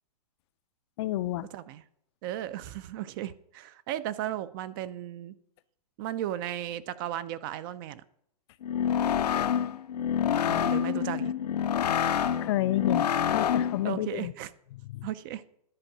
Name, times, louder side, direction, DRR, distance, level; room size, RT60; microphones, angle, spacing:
voice 1, 1.0-1.5 12.4-14.3 14.7-15.1, left 15 dB, 40° left, 0.4 m, -30 dB
voice 2, 2.2-5.3 6.0-8.0 10.5-11.3 13.8-14.5 15.0-15.4, right 12 dB, 35° right, 0.4 m, -35 dB
sound 1, 8.6-13.9, left 8 dB, 85° left, 0.6 m, -27 dB
11.0 x 4.5 x 5.9 m
hypercardioid pair, 135°, 20 cm